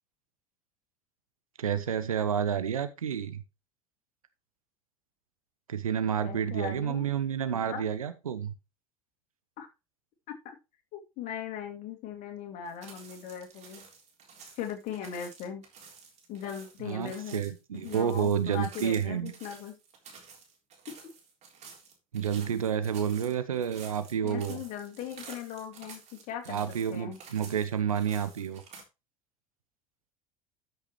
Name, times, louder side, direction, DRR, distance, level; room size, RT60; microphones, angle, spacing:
voice 1, 1.6-3.4 5.7-8.5 16.8-19.3 22.1-24.6 26.5-28.6, right 8 dB, 75° right, 0.9 m, -30 dB
voice 2, 6.2-7.1 7.5-7.8 9.6-9.7 10.3-10.4 10.9-13.9 14.6-15.6 16.3-17.4 17.8-19.7 24.2-27.2, left 8 dB, 45° left, 2.6 m, -39 dB
sound 1, 12.7-28.8, right 5 dB, 40° right, 3.7 m, -51 dB
13.5 x 6.2 x 3.1 m
figure-of-eight pair, 70°, 18 cm